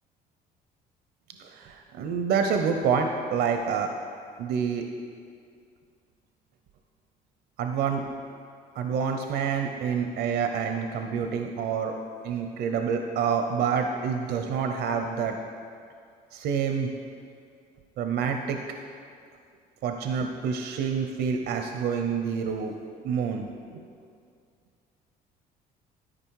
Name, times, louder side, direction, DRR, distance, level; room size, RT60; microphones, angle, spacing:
voice 1, 1.4-3.9 4.4-4.9 7.6-8.0 8.8-11.9 12.2-15.3 16.3-16.9 18.0-18.6 19.8-22.7 23.0-23.5 23.7-23.8, right 6 dB, 70° right, 5 dB, 0.6 m, -27 dB
12.5 x 5.0 x 4.6 m, 2.3 s
cardioid pair, 110°, 17 cm